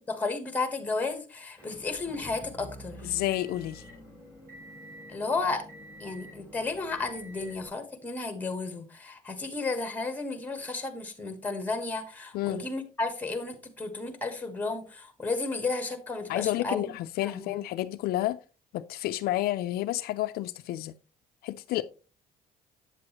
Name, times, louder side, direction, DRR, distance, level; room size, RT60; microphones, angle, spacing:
voice 1, 0.1-3.1 5.1-5.6 6.0-16.9 17.2-17.6, left 3 dB, 10° left, 1.2 m, -33 dB
Motor vehicle (road) / Engine, 1.6-7.7, equal, 15° right, 3.9 m, -48 dB
voice 2, 3.0-3.8 12.3-12.6 16.3-18.4 18.7-20.9 21.4-21.8, left 15 dB, 70° left, 0.4 m, -30 dB
8.0 x 7.6 x 2.9 m
cardioid pair, 155°, 16 cm